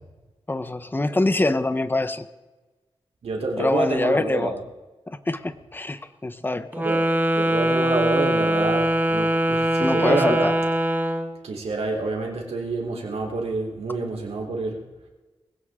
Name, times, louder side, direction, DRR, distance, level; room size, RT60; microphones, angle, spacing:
voice 1, 0.5-2.3 3.6-4.5 5.1-6.9 9.8-10.5, left 2 dB, 20° left, 12 dB, 0.9 m, -24 dB
voice 2, 3.2-4.6 6.8-7.1 7.3-10.5 11.4-14.8, right 3 dB, 90° right, 0 dB, 3.5 m, -27 dB
Wind instrument woodwind instrument, 6.7-11.3, right 1 dB, 15° right, 1.4 m, -22 dB
20.5 x 16.5 x 3.7 m, 1.2 s
wide cardioid pair, 110°, 10 cm